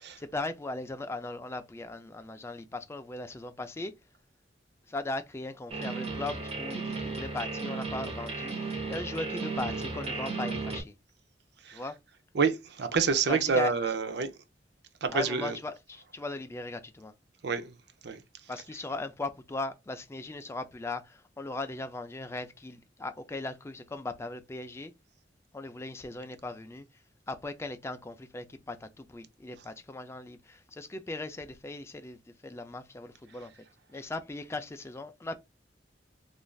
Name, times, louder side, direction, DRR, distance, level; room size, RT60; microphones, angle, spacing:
voice 1, 0.2-3.9 4.9-10.9 11.7-12.0 13.3-13.7 15.1-17.1 18.5-24.9 25.5-26.9 27.3-33.5 33.9-35.4, left 2 dB, 15° left, 0.4 m, -38 dB
sound 1, 5.7-10.8, right 3 dB, 35° right, 0.8 m, -35 dB
voice 2, 12.3-14.3 15.0-15.6 17.4-17.8 18.0-18.2, right 5 dB, 65° right, 0.5 m, -28 dB
3.1 x 2.5 x 2.2 m
head